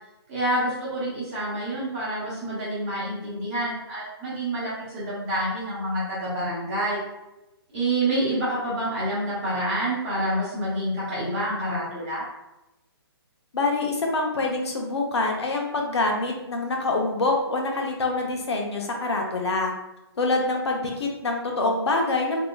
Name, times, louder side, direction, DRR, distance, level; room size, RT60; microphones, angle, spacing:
voice 1, 0.3-7.0 7.7-12.2, right 1 dB, 20° right, -9 dB, 1.0 m, -27 dB
voice 2, 13.5-19.7 20.2-22.4, left 2 dB, 90° left, 1 dB, 0.8 m, -25 dB
3.2 x 2.8 x 2.3 m, 0.95 s
hypercardioid pair, 165°, 14 cm